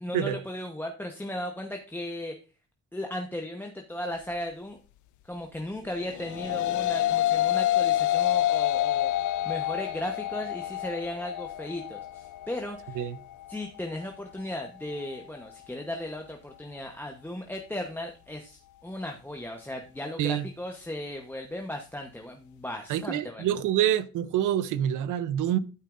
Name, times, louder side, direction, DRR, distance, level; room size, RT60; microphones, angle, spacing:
voice 1, 0.0-2.4 2.9-4.8 5.2-9.1 9.4-13.1 13.5-23.5, left 1 dB, 5° left, 1.0 m, -36 dB
sound 1, 6.0-15.2, left 13 dB, 75° left, 0.5 m, -28 dB
voice 2, 22.9-25.6, right 11 dB, 85° right, 0.7 m, -26 dB
12.5 x 5.5 x 2.5 m
cardioid pair, 90°, 30 cm